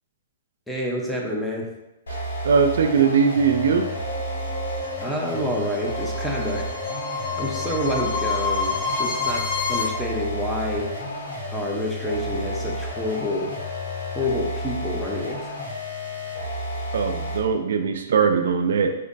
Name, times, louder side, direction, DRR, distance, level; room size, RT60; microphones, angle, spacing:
voice 1, 0.7-1.7 5.0-6.7 7.4-10.9 11.5-13.5 14.1-15.5, left 1 dB, ahead, -2 dB, 0.6 m, -28 dB
sound 1, 2.1-17.6, equal, 85° left, 0.9 m, -31 dB
voice 2, 2.1-3.9 16.9-19.0, right 6 dB, 70° right, 6 dB, 0.3 m, -21 dB
sound 2, 3.9-9.9, left 4 dB, 45° left, 0.7 m, -29 dB
5.0 x 2.1 x 2.5 m, 0.95 s
hypercardioid pair, 135°, 0 cm